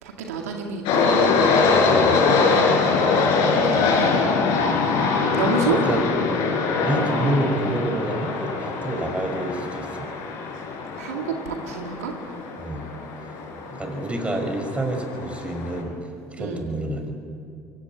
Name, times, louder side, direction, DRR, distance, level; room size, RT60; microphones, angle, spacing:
voice 1, 0.2-1.3 3.7-4.3 5.4-5.8 11.0-12.1 16.4-16.6, right 6 dB, 90° right, 2 dB, 2.1 m, -29 dB
sound 1, 0.9-15.8, left 4 dB, 70° left, 5.5 m, -23 dB
voice 2, 1.9-2.2 5.4-5.5 5.7-6.1 6.8-10.1 12.6-12.9 13.7-15.9 16.3-17.1, right 1 dB, 15° right, 4 dB, 5.7 m, -28 dB
23.0 x 17.5 x 9.9 m, 2.4 s
hypercardioid pair, 65°, 8 cm